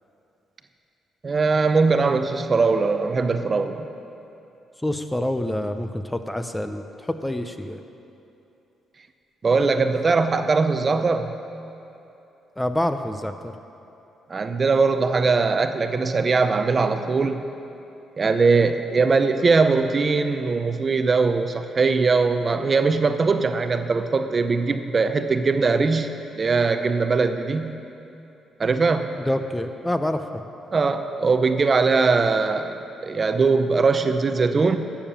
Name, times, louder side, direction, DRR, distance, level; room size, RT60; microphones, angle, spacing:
voice 1, 1.2-3.9 9.4-11.3 14.3-17.4 18.2-27.8 28.6-29.1 30.7-34.8, right 4 dB, 35° right, 8 dB, 0.6 m, -21 dB
voice 2, 4.8-6.8 7.1-7.8 12.6-13.5 29.3-30.4, left 1 dB, 10° left, 8 dB, 0.6 m, -26 dB
12.5 x 7.2 x 7.0 m, 2.8 s
cardioid pair, 90°, 0 cm